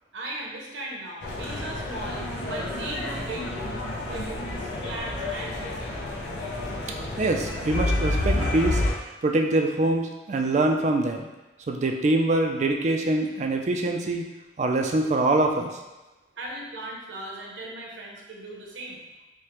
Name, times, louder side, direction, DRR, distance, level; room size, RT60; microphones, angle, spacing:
voice 1, 0.1-3.8 4.1-5.8 16.4-19.0, right 1 dB, 80° right, -2 dB, 0.8 m, -37 dB
sound 1, 1.2-8.9, left 1 dB, 70° left, 0.6 m, -29 dB
voice 2, 7.2-8.8 9.2-11.3 11.7-14.2 14.6-15.7, right 2 dB, 40° right, 3 dB, 0.3 m, -24 dB
4.7 x 2.1 x 2.9 m, 1.1 s
head